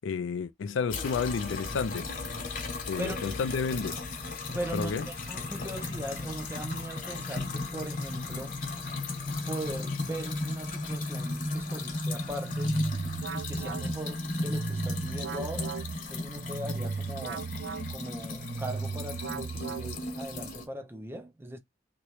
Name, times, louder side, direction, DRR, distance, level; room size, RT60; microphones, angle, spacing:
voice 1, 0.0-2.1 2.9-4.0 4.7-5.1, left 5 dB, 90° left, 0.4 m, -31 dB
sound 1, 0.9-20.7, left 2 dB, 45° left, 1.0 m, -35 dB
voice 2, 4.5-8.6 9.5-12.8 13.3-15.7 16.1-17.5 17.9-21.6, right 1 dB, 10° right, 0.5 m, -39 dB
sound 2, 12.3-20.3, right 5 dB, 75° right, 0.3 m, -37 dB
3.0 x 2.9 x 3.0 m
head